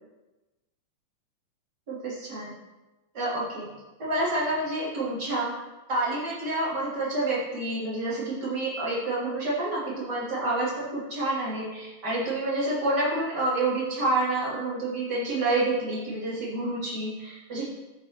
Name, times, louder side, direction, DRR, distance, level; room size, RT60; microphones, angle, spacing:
voice 1, 1.9-2.5 3.1-3.7 4.0-5.6 5.9-17.7, right 2 dB, 30° right, -8 dB, 3.5 m, -28 dB
13.0 x 6.9 x 3.1 m, 1.1 s
omnidirectional pair, 3.6 m